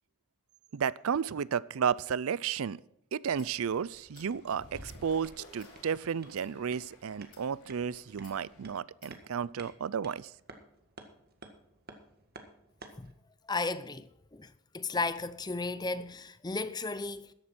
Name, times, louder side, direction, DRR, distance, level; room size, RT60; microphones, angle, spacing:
voice 1, 0.7-2.8 3.1-10.3, right 7 dB, 70° right, 0.4 m, -33 dB
Fowl / Bird, 3.2-8.7, left 1 dB, 90° left, 5.5 m, -54 dB
sound 1, 3.4-3.5 4.1-4.3 4.7-5.0 5.6-5.7 6.3-6.5 7.2-7.5 8.2-8.4 9.0-9.2, left 6 dB, 40° left, 3.5 m, -57 dB
sound 2, 4.0-13.1, right 3 dB, 45° right, 1.7 m, -55 dB
voice 2, 13.5-17.3, left 3 dB, 20° left, 0.6 m, -35 dB
14.0 x 11.0 x 4.4 m
head